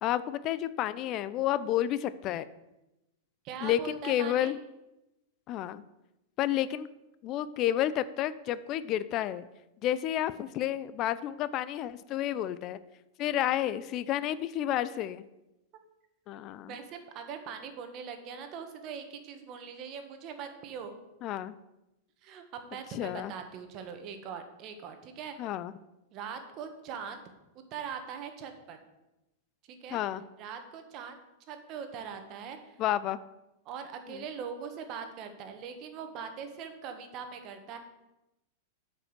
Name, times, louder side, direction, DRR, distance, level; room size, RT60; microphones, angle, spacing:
voice 1, 0.0-2.5 3.6-4.6 5.5-5.8 6.4-6.9 7.2-9.5 9.8-12.8 13.2-15.2 16.3-16.8 21.2-21.5 22.9-23.3 25.4-25.7 29.9-30.2 32.8-33.2 34.1-34.2, left 12 dB, 40° left, 15 dB, 0.4 m, -30 dB
voice 2, 3.4-4.5 16.7-21.0 22.2-25.4 26.1-27.2 27.7-28.8 29.8-30.0 30.4-31.2 31.5-32.7 33.6-37.8, right 7 dB, 45° right, 7 dB, 1.5 m, -41 dB
8.5 x 5.4 x 6.7 m, 0.96 s
hypercardioid pair, 110°, 0 cm